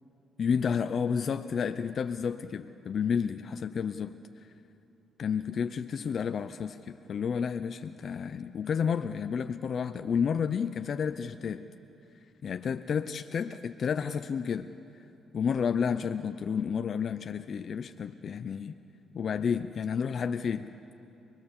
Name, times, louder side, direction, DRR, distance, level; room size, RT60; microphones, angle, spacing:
voice 1, 0.4-4.5 5.2-11.7 12.4-14.7 15.3-18.8 19.1-20.7, left 6 dB, 55° left, 10 dB, 0.6 m, -31 dB
26.0 x 20.0 x 7.2 m, 2.8 s
cardioid pair, 90°, 0 cm